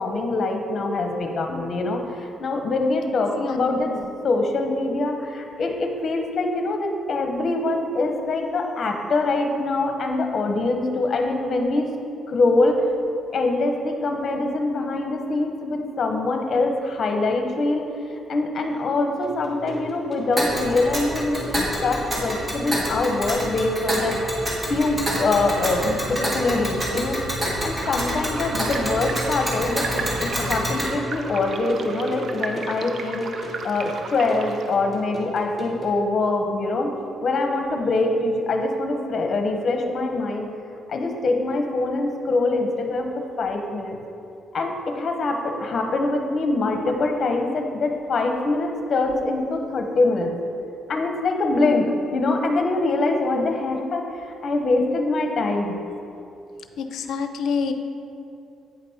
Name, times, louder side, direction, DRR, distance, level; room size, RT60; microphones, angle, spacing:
voice 1, 0.0-3.9 4.2-11.9 12.3-12.9 13.3-17.8 18.3-24.2 24.7-27.2 27.6-33.3 33.6-36.9 37.2-40.5 40.9-44.0 44.5-50.4 50.9-55.8, left 2 dB, 50° left, 4 dB, 1.0 m, -24 dB
sound 1, 19.2-36.0, left 1 dB, 5° left, 1.7 m, -38 dB
Tick, 20.4-30.9, equal, 25° right, 1.9 m, -28 dB
sound 2, 27.8-34.7, right 4 dB, 55° right, 0.6 m, -35 dB
voice 2, 56.8-57.7, left 5 dB, 70° left, 7 dB, 0.6 m, -27 dB
9.0 x 5.3 x 4.3 m, 2.6 s
cardioid pair, 90°, 0 cm